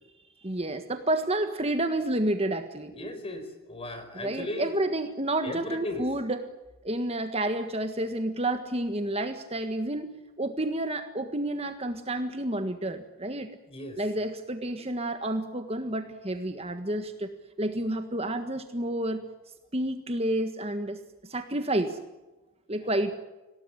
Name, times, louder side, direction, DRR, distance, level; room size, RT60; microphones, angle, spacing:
voice 1, 0.4-3.0 4.1-6.4 6.8-13.5 14.0-17.3 17.6-19.2 19.7-22.0 22.7-23.1, right 1 dB, 25° right, 7 dB, 1.6 m, -30 dB
voice 2, 2.9-4.7 5.4-6.0 13.7-14.0, left 1 dB, 25° left, 8 dB, 4.7 m, -36 dB
26.0 x 18.5 x 10.0 m, 1.1 s
head